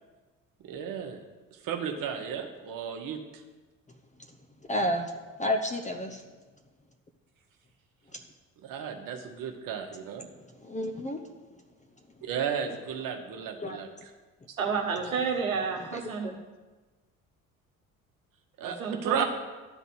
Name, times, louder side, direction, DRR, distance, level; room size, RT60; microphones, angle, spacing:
voice 1, 0.6-1.2 1.6-3.2 8.6-10.3 12.2-13.9 18.6-18.8 19.0-19.2, right 8 dB, 55° right, 4 dB, 1.3 m, -33 dB
voice 2, 4.7-5.1 5.4-6.2 10.6-11.2 13.6-13.9 15.9-16.3, equal, 15° left, 4 dB, 0.9 m, -31 dB
voice 3, 14.6-16.3 18.6-19.2, right 5 dB, 80° right, 3 dB, 1.1 m, -30 dB
12.0 x 4.1 x 7.8 m, 1.3 s
figure-of-eight pair, 50°, 41 cm